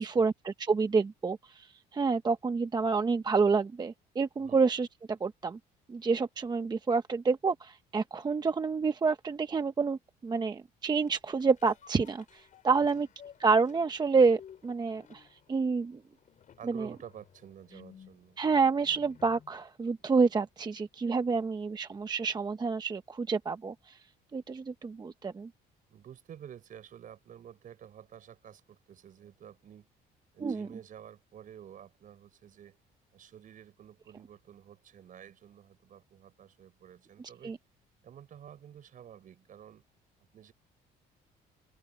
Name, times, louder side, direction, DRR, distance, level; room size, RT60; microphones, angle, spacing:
voice 1, 0.0-5.6 5.9-13.1 13.4-16.0 16.6-16.9 18.4-24.0 24.3-25.5 30.4-30.7 37.4-37.6, right 4 dB, 25° right, 0.9 m, -28 dB
sound 1, 11.0-19.6 20.1-20.2, left 8 dB, 50° left, 5.4 m, -56 dB
voice 2, 16.6-18.4 25.9-29.9 30.3-32.8 33.1-37.5 38.0-39.8 40.3-40.5, right 9 dB, 50° right, 5.7 m, -51 dB
open air
cardioid pair, 110°, 17 cm